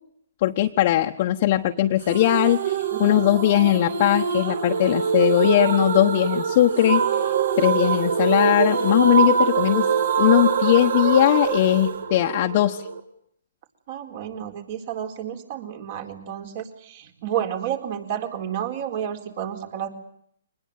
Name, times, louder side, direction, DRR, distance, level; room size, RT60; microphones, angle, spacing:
voice 1, 0.4-9.9 10.2-12.8, left 14 dB, 45° left, 2 dB, 1.2 m, -20 dB
sound 1, 2.1-13.0, right 6 dB, 70° right, 3.0 m, -24 dB
voice 2, 2.9-3.2 13.9-19.9, right 9 dB, 45° right, 6 dB, 4.3 m, -31 dB
24.0 x 20.0 x 9.3 m, 0.69 s
hypercardioid pair, 140°, 0 cm